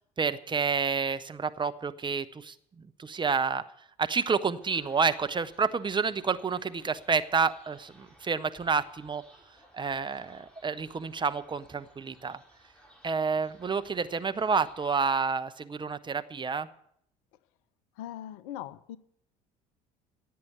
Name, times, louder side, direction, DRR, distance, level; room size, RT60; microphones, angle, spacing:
voice 1, 0.2-3.6 4.0-9.2 9.7-12.4 13.0-16.7, right 5 dB, 25° right, 10 dB, 0.9 m, -29 dB
sound 1, 4.6-14.9, right 1 dB, 5° left, 5.1 m, -59 dB
voice 2, 18.0-19.0, left 12 dB, 65° left, 17 dB, 0.8 m, -40 dB
16.0 x 8.7 x 8.3 m, 0.70 s
figure-of-eight pair, 60°, 20 cm